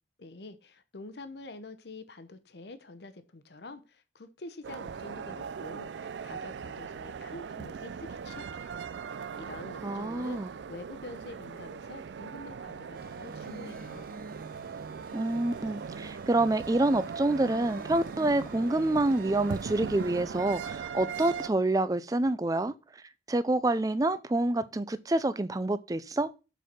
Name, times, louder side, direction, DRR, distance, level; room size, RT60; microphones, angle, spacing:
voice 1, 0.2-8.8 9.3-10.4 10.7-14.0, left 2 dB, 70° left, 0.8 m, -46 dB
sound 1, 4.6-21.5, right 6 dB, 80° right, 0.4 m, -40 dB
voice 2, 9.8-10.5 15.1-22.7 23.3-26.3, right 2 dB, 20° right, 0.4 m, -27 dB
sound 2, 12.9-20.2, right 3 dB, 55° right, 0.8 m, -47 dB
6.9 x 4.6 x 6.0 m
head